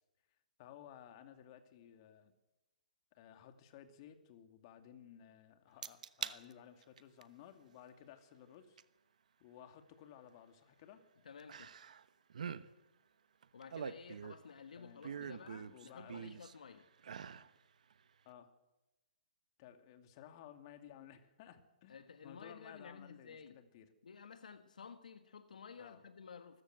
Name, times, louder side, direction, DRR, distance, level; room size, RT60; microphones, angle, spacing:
voice 1, 0.6-2.3 3.1-8.8 9.4-11.0 14.8-16.2 18.2-18.5 19.6-23.9 25.8-26.0, left 10 dB, 40° left, 7 dB, 2.5 m, -57 dB
sound 1, 5.8-6.4 6.8-7.2 8.8-8.9 11.5-12.0 12.3-12.6 13.4-14.5 15.0-16.5 17.0-17.5 17.9-18.0, right 7 dB, 65° right, 1.1 m, -44 dB
voice 2, 11.2-11.7 13.5-16.9 21.9-23.6 24.0-26.6, left 6 dB, 70° left, 9 dB, 1.5 m, -53 dB
24.5 x 14.5 x 8.0 m, 1.0 s
hypercardioid pair, 140°, 4 cm